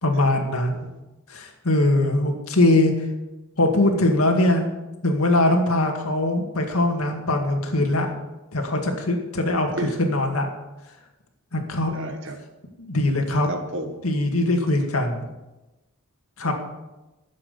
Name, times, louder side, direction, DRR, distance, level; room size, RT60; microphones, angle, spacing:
voice 1, 0.0-0.9 1.3-2.9 3.6-4.7 5.0-8.1 8.5-10.5 11.5-11.9 12.8-13.5 14.0-15.2 16.4-16.5, left 1 dB, 80° left, 3 dB, 2.1 m, -21 dB
voice 2, 9.5-9.9 11.9-12.4 13.5-13.9 16.4-16.5, right 2 dB, 60° right, 6 dB, 1.6 m, -32 dB
12.0 x 7.7 x 6.8 m, 1.0 s
head